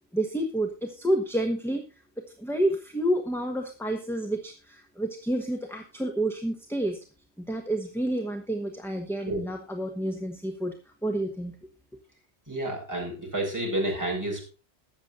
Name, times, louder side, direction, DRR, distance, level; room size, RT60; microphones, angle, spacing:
voice 1, 0.1-1.8 2.4-7.0 7.4-10.7 11.0-11.5, right 1 dB, ahead, 4 dB, 1.2 m, -29 dB
voice 2, 12.5-14.5, right 1 dB, 15° right, -3 dB, 6.0 m, -30 dB
21.5 x 7.4 x 2.6 m, 0.34 s
omnidirectional pair, 1.2 m